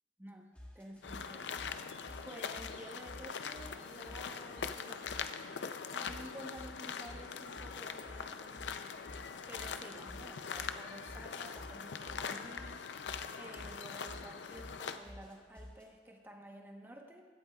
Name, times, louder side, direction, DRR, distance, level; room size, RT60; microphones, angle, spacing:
voice 1, 0.2-1.5 1.8-5.1 5.9-8.9 9.5-12.9 13.4-17.2, right 1 dB, 15° right, 1 dB, 1.1 m, -52 dB
sound 1, 0.5-5.5 6.0-15.9, left 1 dB, 10° left, 1.4 m, -53 dB
sound 2, 1.0-15.0, left 6 dB, 80° left, 0.5 m, -42 dB
sound 3, 1.3-11.2, right 1 dB, 55° right, 2.0 m, -65 dB
16.5 x 12.0 x 2.4 m, 1.5 s
head